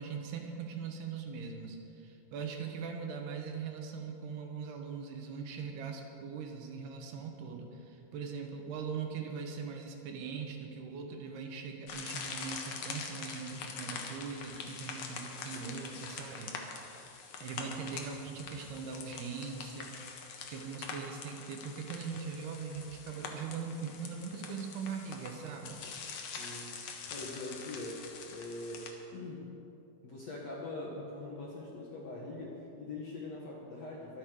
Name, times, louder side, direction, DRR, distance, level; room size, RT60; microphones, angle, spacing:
voice 1, 0.0-16.5 17.4-25.8, right 5 dB, 75° right, 3 dB, 3.1 m, -41 dB
sound 1, 11.9-28.9, left 5 dB, 80° left, 1.4 m, -44 dB
voice 2, 26.2-29.5 30.0-34.2, left 2 dB, 60° left, -4 dB, 1.8 m, -43 dB
23.5 x 8.5 x 4.9 m, 2.8 s
omnidirectional pair, 4.8 m